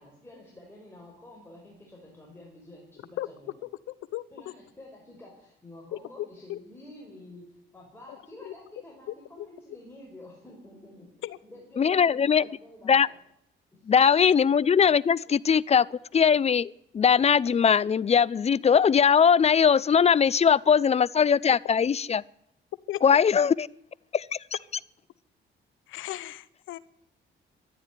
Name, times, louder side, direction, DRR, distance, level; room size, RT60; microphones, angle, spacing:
voice 1, 0.0-3.6 4.3-11.1 11.5-13.2 13.7-13.9 15.3-15.4, left 1 dB, 10° left, -2 dB, 5.4 m, -49 dB
voice 2, 3.6-4.5 5.9-6.6 8.4-8.5 9.4-9.5 11.2-11.4 14.2-14.3 22.9-23.0 25.9-26.8, left 14 dB, 85° left, 19 dB, 0.8 m, -36 dB
voice 3, 11.8-12.4 12.9-13.1 13.9-22.2 23.0-23.7 24.1-24.4, left 7 dB, 30° left, 23 dB, 0.5 m, -21 dB
13.5 x 11.0 x 9.7 m, 0.78 s
cardioid pair, 90°, 20 cm